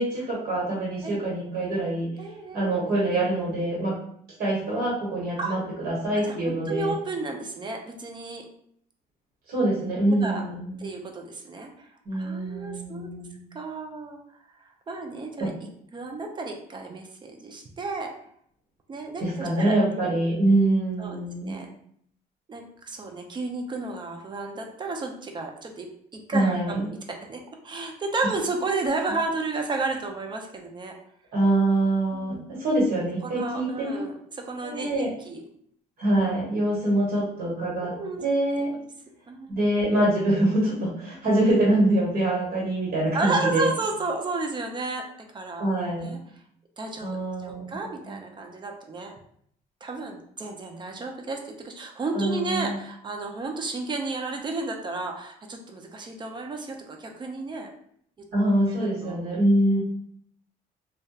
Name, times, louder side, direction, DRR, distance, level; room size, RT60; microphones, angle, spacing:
voice 1, 0.0-2.1 2.5-3.9 4.4-6.9 9.5-10.9 12.0-13.4 15.4-15.5 19.2-21.6 26.3-26.9 31.3-34.1 34.6-35.1 36.0-38.7 39.5-43.7 45.6-46.1 47.0-47.8 48.1-48.2 52.1-52.8 58.3-59.8, right 1 dB, 65° right, -5 dB, 1.0 m, -25 dB
voice 2, 2.2-2.9 5.4-5.6 6.3-8.4 10.1-10.4 10.8-13.2 13.5-18.1 18.9-20.4 21.0-21.7 22.5-25.9 26.1-30.9 32.1-32.5 33.2-35.4 37.8-38.2 39.3-39.6 43.1-45.1 45.3-45.7 46.0-46.2 46.8-47.2 47.4-49.1 49.8-57.7 58.7-59.3, right 3 dB, 25° right, 3 dB, 0.4 m, -32 dB
2.7 x 2.2 x 2.3 m, 0.67 s
cardioid pair, 110°, 17 cm